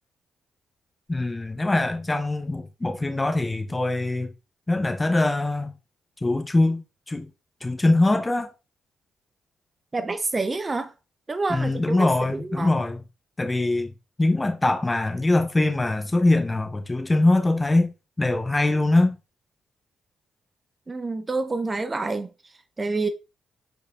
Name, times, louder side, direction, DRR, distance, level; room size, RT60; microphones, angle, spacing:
voice 1, 1.1-4.3 4.7-5.7 6.2-7.3 7.6-8.5 11.5-13.0 13.4-13.9 14.2-19.2, left 2 dB, 20° left, 0.8 m, -23 dB
voice 2, 9.9-10.9 11.3-12.7 20.9-22.3 22.8-23.1, right 3 dB, 30° right, 0.5 m, -28 dB
4.8 x 4.5 x 2.4 m
supercardioid pair, 60°, 0 cm